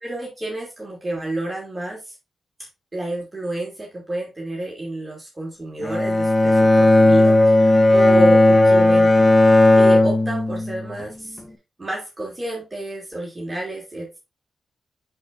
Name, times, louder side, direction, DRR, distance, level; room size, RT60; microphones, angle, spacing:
voice 1, 0.0-2.1 2.9-9.1 9.5-11.4 11.8-14.2, right 1 dB, 25° right, -2 dB, 2.5 m, -29 dB
Bowed string instrument, 5.8-11.1, left 2 dB, 30° left, 1.2 m, -15 dB
10.5 x 4.4 x 2.6 m, 0.24 s
cardioid pair, 60°, 0 cm